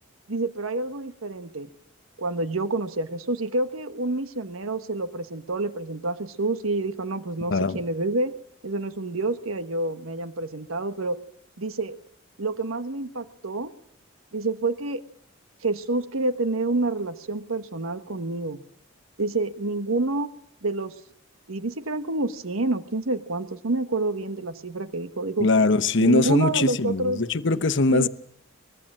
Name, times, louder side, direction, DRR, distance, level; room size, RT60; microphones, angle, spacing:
voice 1, 0.3-1.7 2.2-8.3 8.6-11.2 11.6-12.0 12.4-13.7 14.3-15.0 15.6-18.6 19.2-20.3 20.6-21.0 21.5-25.5 26.0-27.2 27.9-28.1, right 2 dB, 80° right, 1.3 m, -28 dB
voice 2, 25.4-28.1, left 3 dB, 60° left, 1.0 m, -21 dB
24.0 x 21.5 x 7.5 m
head